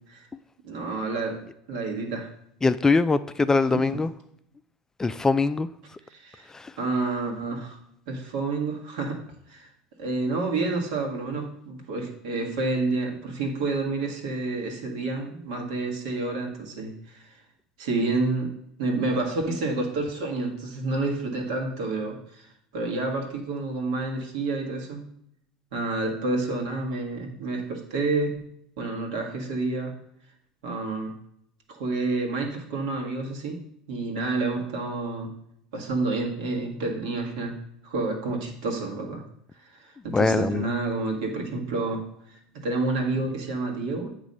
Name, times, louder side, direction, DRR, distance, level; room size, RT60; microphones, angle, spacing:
voice 1, 0.6-2.3 3.7-4.0 6.1-6.5 6.8-7.8 8.1-9.2 9.5-9.7 10.0-17.4 17.8-18.5 18.8-25.1 25.7-28.4 28.8-30.0 30.6-31.2 31.7-33.6 33.9-35.4 35.7-39.2 39.6-44.1, right 3 dB, 75° right, 1 dB, 1.5 m, -29 dB
voice 2, 2.6-4.1 5.0-5.7 6.5-6.7 40.1-40.7, left 3 dB, 15° left, 12 dB, 0.3 m, -22 dB
8.3 x 3.1 x 5.3 m, 0.73 s
hypercardioid pair, 85°, 3 cm